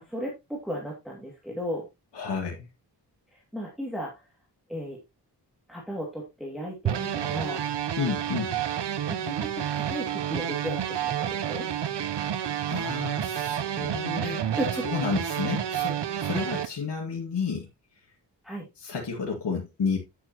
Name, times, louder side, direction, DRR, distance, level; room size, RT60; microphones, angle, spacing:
voice 1, 0.0-1.9 3.3-4.1 4.7-5.0 5.7-7.6 9.1-11.7 14.2-14.9 16.4-16.7 18.4-18.7, equal, ahead, 2.3 m, -35 dB
voice 2, 2.1-2.7 8.0-8.5 12.7-14.4 14.8-17.7 18.8-20.0, left 5 dB, 70° left, 2.2 m, -31 dB
sound 1, 6.9-16.7, right 9 dB, 70° right, 0.8 m, -29 dB
9.1 x 8.4 x 2.9 m
wide cardioid pair, 140°, 43 cm